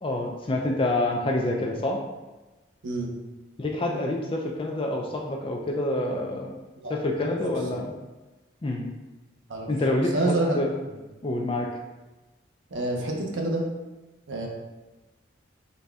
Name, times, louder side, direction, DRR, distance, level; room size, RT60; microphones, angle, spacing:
voice 1, 0.0-2.0 3.6-6.5 6.9-7.9 8.6-8.9 9.7-10.7 11.2-11.7, left 1 dB, 25° left, 1 dB, 0.4 m, -27 dB
voice 2, 6.8-7.3 7.7-7.8 9.5-9.7 10.1-10.6 12.7-13.6 14.3-14.5, right 2 dB, 80° right, 0 dB, 0.7 m, -28 dB
4.0 x 2.2 x 3.5 m, 1.1 s
head